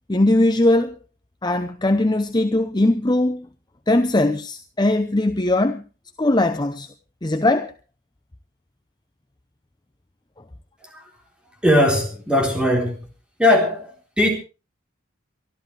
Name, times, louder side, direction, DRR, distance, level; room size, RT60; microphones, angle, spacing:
voice 1, 0.1-1.0 1.4-3.5 3.9-5.8 6.2-6.9 7.2-7.7, left 1 dB, 20° left, 0.7 m, -20 dB
voice 2, 11.6-13.0 13.4-14.3, left 1 dB, 5° right, 3.7 m, -19 dB
23.5 x 13.5 x 3.3 m
head